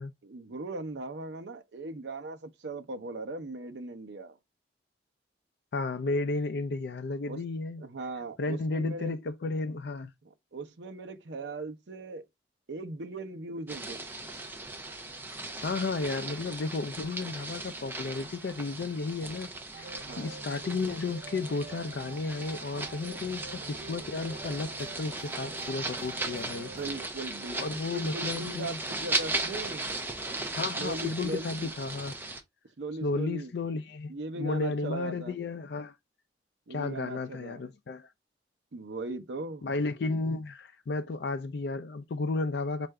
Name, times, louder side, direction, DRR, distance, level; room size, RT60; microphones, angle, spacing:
voice 1, 0.2-4.4 7.3-7.4 7.8-9.1 10.5-12.2 12.7-14.1 20.0-20.3 26.6-27.7 27.9-29.8 30.8-31.7 32.8-33.5 34.1-35.4 36.7-37.6 38.7-39.7, right 2 dB, 90° right, 0.7 m, -39 dB
voice 2, 5.7-7.8 8.4-10.1 15.6-19.9 20.2-26.7 27.5-28.8 30.5-32.2 33.0-35.9 36.7-38.1 39.6-42.9, left 3 dB, 65° left, 0.4 m, -33 dB
sound 1, 13.7-32.4, right 2 dB, 10° right, 0.6 m, -37 dB
sound 2, 19.7-27.1, right 4 dB, 55° right, 0.4 m, -47 dB
4.6 x 2.5 x 3.2 m
head